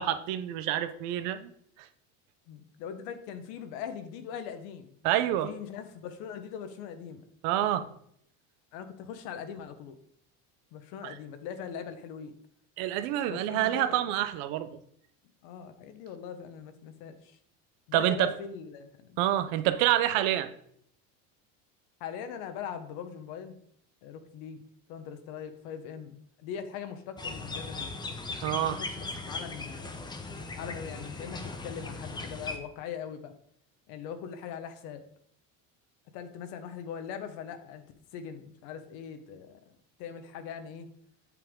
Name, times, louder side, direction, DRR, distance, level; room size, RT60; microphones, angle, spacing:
voice 1, 0.0-1.5 1.8-1.9 5.0-5.5 7.4-7.9 11.0-11.1 12.8-14.8 17.9-18.3 19.2-20.5 28.4-28.8, right 12 dB, 70° right, 11 dB, 0.9 m, -27 dB
voice 2, 2.5-4.9 5.4-7.2 8.7-10.0 10.7-12.3 13.3-14.1 15.4-17.4 17.9-19.2 22.0-23.6 24.0-27.9 28.5-30.0 30.5-33.3 33.9-35.0 36.1-37.8 38.1-39.6 40.0-40.9, left 8 dB, 70° left, 9 dB, 1.3 m, -41 dB
sound 1, 27.2-32.6, left 3 dB, 10° left, 0.7 m, -38 dB
8.2 x 6.8 x 3.8 m, 0.67 s
cardioid pair, 135°, 39 cm